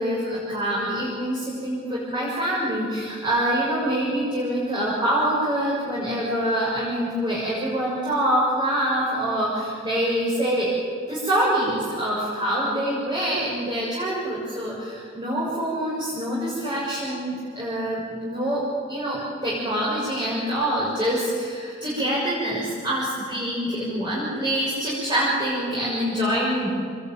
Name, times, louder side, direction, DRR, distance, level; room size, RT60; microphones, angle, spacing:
voice 1, 0.0-10.7 11.1-26.7, right 1 dB, 20° right, -7 dB, 6.8 m, -25 dB
27.0 x 21.5 x 9.3 m, 2.2 s
head